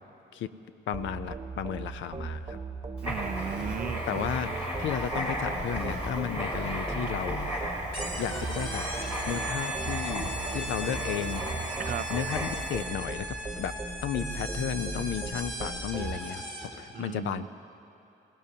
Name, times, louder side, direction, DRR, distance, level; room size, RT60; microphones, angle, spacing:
voice 1, 0.9-2.6 4.1-7.5 7.8-7.9 8.2-8.9 9.3-11.8 12.1-13.3 13.6-13.8 14.0-17.5, left 9 dB, 75° left, 12 dB, 0.6 m, -34 dB
sound 1, 0.9-16.2, right 3 dB, 20° right, 1.1 m, -38 dB
Writing, 3.0-12.8, equal, 30° left, 4.3 m, -35 dB
voice 2, 3.0-4.6 11.8-12.1 16.9-17.5, right 9 dB, 45° right, 13 dB, 0.5 m, -36 dB
sound 2, 7.9-16.8, right 1 dB, 10° left, 3.0 m, -38 dB
23.5 x 18.5 x 2.8 m, 2.8 s
cardioid pair, 90°, 20 cm